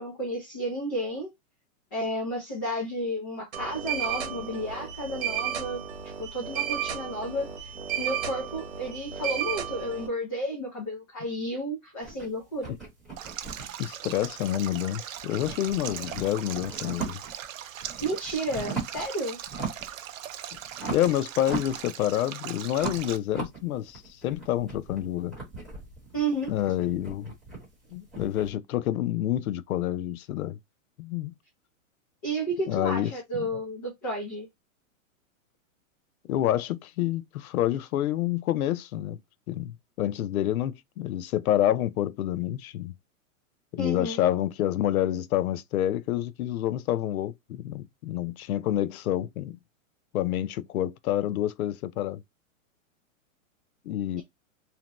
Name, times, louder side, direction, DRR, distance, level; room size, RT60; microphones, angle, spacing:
voice 1, 0.0-1.3 1.9-12.8 18.0-19.4 26.1-26.5 32.2-34.5 43.8-44.2 54.2-54.3, right 1 dB, 20° left, 0.6 m, -32 dB
sound 1, 3.5-10.1, right 9 dB, 50° right, 1.1 m, -33 dB
sound 2, 12.0-14.9 15.2-17.4 17.8-19.1 19.4-20.0 20.3-22.3 22.7-28.5, right 5 dB, ahead, 1.0 m, -38 dB
Stream, 13.2-23.2, right 10 dB, 65° right, 0.6 m, -40 dB
voice 2, 13.8-17.2 20.9-25.3 26.5-27.3 27.9-30.6 31.0-31.3 32.7-33.1 33.4-33.5 36.3-39.2 39.5-42.9 43.7-49.6 50.1-52.2 53.9-54.2, left 12 dB, 80° left, 0.5 m, -28 dB
2.8 x 2.1 x 2.9 m
hypercardioid pair, 175°, 42 cm